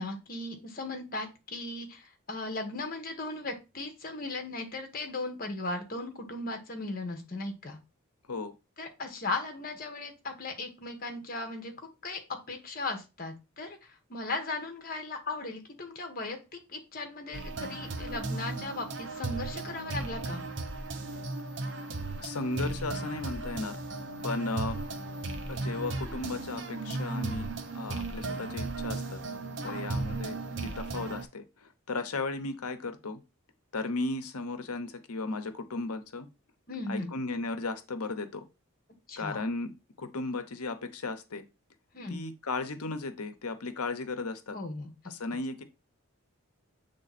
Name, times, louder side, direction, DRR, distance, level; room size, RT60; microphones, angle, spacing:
voice 1, 0.0-7.8 8.8-20.4 29.6-29.8 36.7-37.1 39.1-39.4 41.9-42.2 44.5-44.9, left 2 dB, 40° left, 4 dB, 1.5 m, -37 dB
sound 1, 17.3-31.2, right 3 dB, 55° right, 0.9 m, -36 dB
voice 2, 22.2-23.8 24.2-24.8 25.5-27.5 27.7-29.2 29.6-33.2 33.7-36.3 36.9-38.4 39.2-39.7 40.0-41.4 42.1-44.6 45.1-45.6, left 3 dB, 85° left, 10 dB, 1.0 m, -35 dB
7.8 x 3.5 x 4.2 m, 0.27 s
head